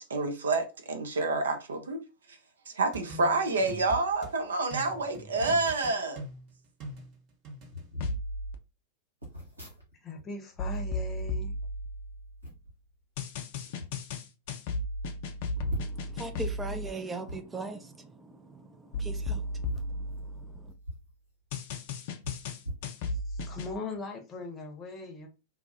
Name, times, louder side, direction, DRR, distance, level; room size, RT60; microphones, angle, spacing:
voice 1, 0.0-2.0 2.7-6.2, right 3 dB, 70° right, 0.5 m, -28 dB
sound 1, 2.9-4.3 4.7-7.8, right 2 dB, 40° right, 0.9 m, -43 dB
sound 2, 5.3-5.6 6.5-6.6 6.8-7.1 7.6-8.2 9.2-10.2 10.5-11.9 12.4-12.8 13.5-13.9 14.4-14.5 14.8-14.9 15.7-16.1 17.2-17.4 18.8-19.0 19.6-21.1 21.4-21.5 22.2-23.4 23.9-24.1, left 1 dB, 85° right, 1.0 m, -43 dB
sound 3, 8.0-8.5 10.6-12.5 13.2-16.9 18.9-20.8 21.5-23.7, left 1 dB, 50° left, 0.4 m, -34 dB
voice 2, 10.0-11.5 23.1-25.3, left 3 dB, 20° left, 0.7 m, -40 dB
voice 3, 15.6-20.7, right 2 dB, 15° right, 0.4 m, -41 dB
2.3 x 2.0 x 2.6 m
figure-of-eight pair, 90°, 0 cm